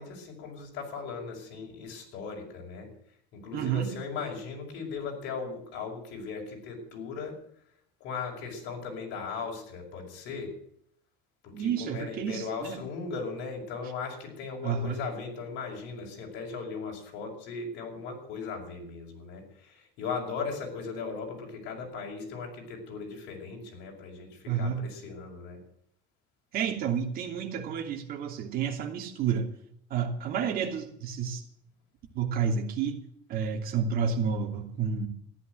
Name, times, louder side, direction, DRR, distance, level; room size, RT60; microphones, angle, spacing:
voice 1, 0.0-2.9 3.3-7.4 8.0-10.6 11.4-25.6, left 5 dB, 65° left, 0 dB, 5.6 m, -38 dB
voice 2, 3.5-3.9 11.5-12.8 14.6-15.0 24.5-24.8 26.5-29.5 29.9-31.4 32.1-33.0 33.3-35.1, right 7 dB, 50° right, 3 dB, 2.9 m, -30 dB
14.5 x 11.0 x 7.9 m, 0.68 s
cardioid pair, 150°, 19 cm